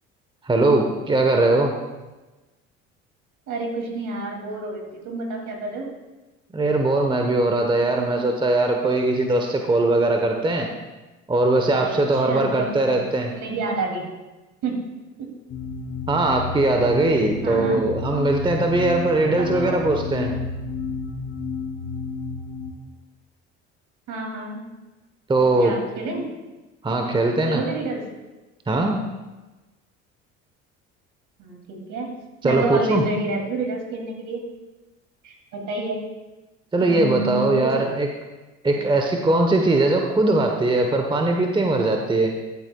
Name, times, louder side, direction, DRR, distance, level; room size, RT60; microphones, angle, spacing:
voice 1, 0.4-1.7 6.5-10.7 11.3-13.3 16.1-20.3 25.3-25.7 26.8-27.6 28.7-29.0 32.4-33.0 36.7-38.1 38.6-42.3, right 2 dB, 15° right, 3 dB, 1.0 m, -20 dB
voice 2, 3.5-5.9 11.8-12.7 13.4-14.0 14.6-14.8 15.2-15.3 17.4-17.8 19.1-19.9 24.1-24.6 25.4-26.3 27.4-28.0 31.4-32.1 32.4-34.4 35.2-36.0 36.8-38.0, right 2 dB, 60° right, 1 dB, 2.6 m, -29 dB
sound 1, 15.5-22.7, left 4 dB, 60° left, 2.7 m, -31 dB
14.0 x 8.8 x 2.3 m, 1.1 s
hypercardioid pair, 70°, 35 cm